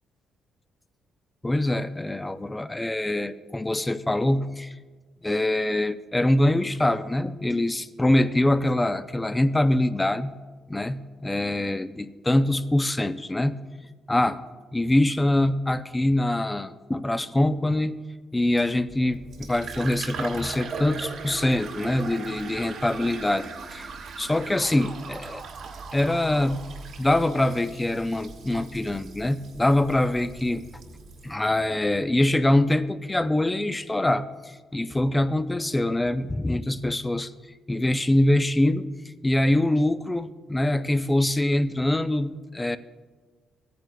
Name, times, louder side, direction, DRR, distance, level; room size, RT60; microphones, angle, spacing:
voice 1, 1.4-4.7 5.2-10.3 10.7-13.5 14.1-14.4 14.7-18.0 18.3-25.4 25.9-26.6 27.0-30.7 31.2-37.3 37.7-38.9 39.2-42.8, left 1 dB, 15° left, 12 dB, 0.4 m, -24 dB
Fill (with liquid), 18.9-31.3, right 4 dB, 75° right, 1.4 m, -40 dB
Alarm, 19.5-27.4, right 6 dB, 55° right, 0.5 m, -43 dB
15.5 x 9.3 x 2.2 m, 1.4 s
cardioid pair, 90°, 0 cm